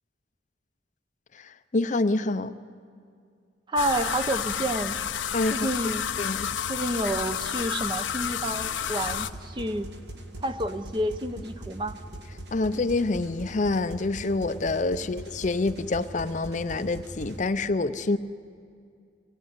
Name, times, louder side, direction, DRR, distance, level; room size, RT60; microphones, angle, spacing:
voice 1, 1.3-2.5 5.3-5.7 6.2-6.5 12.5-18.2, left 2 dB, 40° left, 11 dB, 0.6 m, -27 dB
voice 2, 3.7-5.0 5.5-6.3 6.7-9.9 10.4-12.0 15.0-15.1, right 1 dB, 25° right, 9 dB, 0.8 m, -29 dB
sound 1, 3.8-9.3, left 8 dB, 85° left, 0.8 m, -30 dB
sound 2, 9.0-17.5, right 1 dB, 60° right, 1.7 m, -41 dB
25.0 x 18.0 x 9.7 m, 2.3 s
head